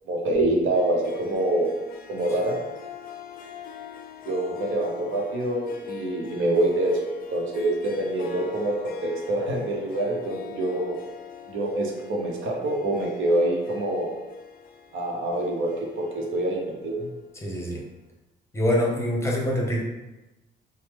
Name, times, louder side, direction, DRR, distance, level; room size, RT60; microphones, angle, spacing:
voice 1, 0.1-1.7 2.1-2.6 4.3-7.0 7.3-11.0 11.5-14.1 14.9-17.1, right 1 dB, 80° right, -1 dB, 0.7 m, -26 dB
Harp, 0.7-17.5, left 6 dB, 45° left, 0.4 m, -43 dB
voice 2, 17.4-17.8 18.5-19.8, left 1 dB, 15° left, -2 dB, 0.8 m, -24 dB
3.1 x 2.0 x 3.3 m, 1.0 s
cardioid pair, 90°, 20 cm